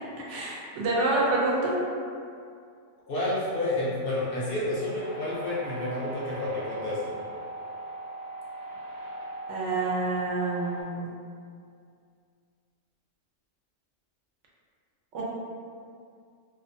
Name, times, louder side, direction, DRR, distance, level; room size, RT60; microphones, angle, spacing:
voice 1, 0.3-1.8 9.5-11.2 15.1-15.2, right 2 dB, 80° right, -4 dB, 0.9 m, -27 dB
voice 2, 3.1-7.1, left 1 dB, 60° left, -7 dB, 0.7 m, -30 dB
sound 1, 5.0-10.8, right 2 dB, 55° right, 0.5 m, -39 dB
2.5 x 2.2 x 2.6 m, 2.3 s
omnidirectional pair, 1.2 m